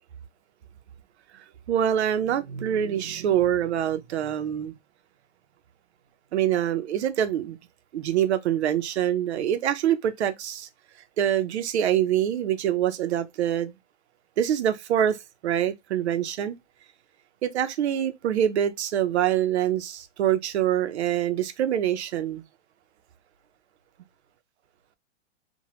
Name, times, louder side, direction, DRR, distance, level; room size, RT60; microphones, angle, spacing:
voice 1, 1.3-4.7 6.3-7.6 7.9-10.7 11.2-13.7 14.4-15.2 15.4-16.6 17.4-22.4, right 10 dB, 65° right, 0.6 m, -25 dB
3.0 x 2.2 x 2.8 m
hypercardioid pair, 145°, 37 cm